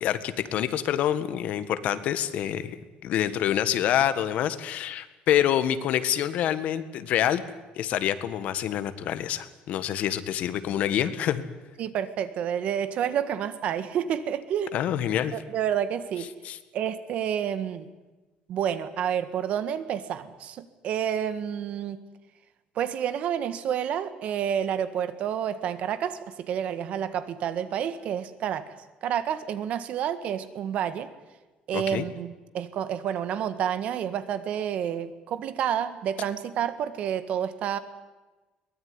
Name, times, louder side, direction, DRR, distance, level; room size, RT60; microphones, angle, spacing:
voice 1, 0.0-2.8 3.0-7.4 7.8-11.4 14.7-15.3 16.4-16.6 31.7-32.0, left 10 dB, 55° left, 12 dB, 1.7 m, -26 dB
voice 2, 11.8-14.7 15.3-16.3 16.7-17.8 18.5-22.0 22.7-28.7 29.0-31.1 31.7-37.8, right 9 dB, 50° right, 12 dB, 1.7 m, -29 dB
23.0 x 20.0 x 9.7 m, 1.2 s
cardioid pair, 165°, 3 cm